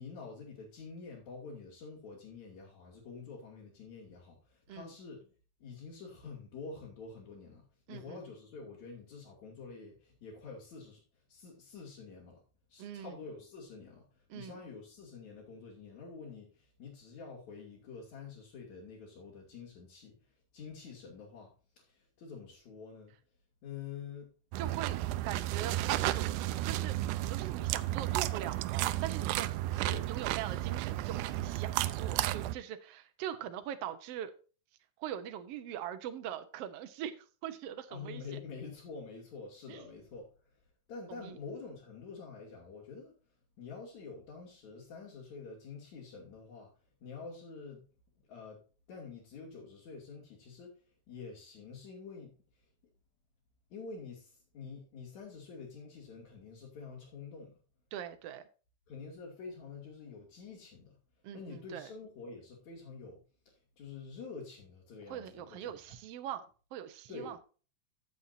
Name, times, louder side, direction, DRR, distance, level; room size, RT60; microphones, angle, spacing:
voice 1, 0.0-5.3 5.6-11.0 11.3-12.4 12.7-20.2 20.5-21.5 21.8-23.1 23.6-24.3 29.7-30.1 37.9-40.3 40.9-43.1 43.6-46.7 47.0-47.9 48.3-48.6 48.9-50.8 51.1-52.3 53.7-57.6 58.9-61.0 61.3-65.9 67.1-67.4, left 5 dB, 65° left, -5 dB, 3.7 m, -47 dB
voice 2, 7.9-8.2 12.8-13.2 14.3-14.6 24.6-25.0 25.2-29.5 30.1-34.3 35.0-38.2 39.7-39.8 41.1-41.4 57.9-58.4 61.2-61.9 65.1-66.4 66.7-67.4, right 10 dB, 65° right, 9 dB, 1.7 m, -42 dB
sound 1, 24.5-32.6, right 15 dB, 85° right, 2.1 m, -33 dB
14.5 x 7.2 x 2.7 m, 0.36 s
omnidirectional pair, 3.6 m